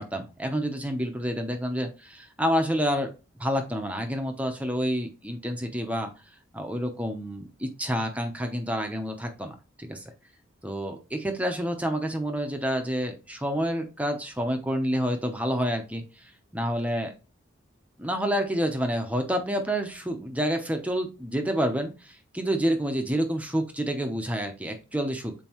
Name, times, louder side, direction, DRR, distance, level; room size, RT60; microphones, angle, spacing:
voice 1, 0.0-3.1 3.4-6.1 6.5-10.1 10.6-17.1 18.0-25.3, equal, 5° right, 5 dB, 0.8 m, -28 dB
7.4 x 4.5 x 3.0 m, 0.31 s
head